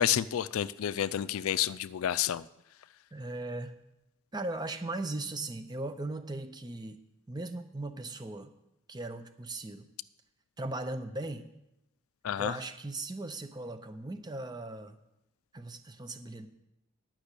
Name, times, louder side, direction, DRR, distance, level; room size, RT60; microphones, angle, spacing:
voice 1, 0.0-2.4 12.2-12.5, left 10 dB, 80° left, 16 dB, 0.4 m, -29 dB
voice 2, 3.1-3.7 4.3-7.0 7.3-8.5 8.9-9.9 10.6-11.5 12.4-15.0 15.5-16.5, right 2 dB, 20° right, 9 dB, 0.6 m, -38 dB
10.0 x 6.1 x 8.1 m, 0.88 s
head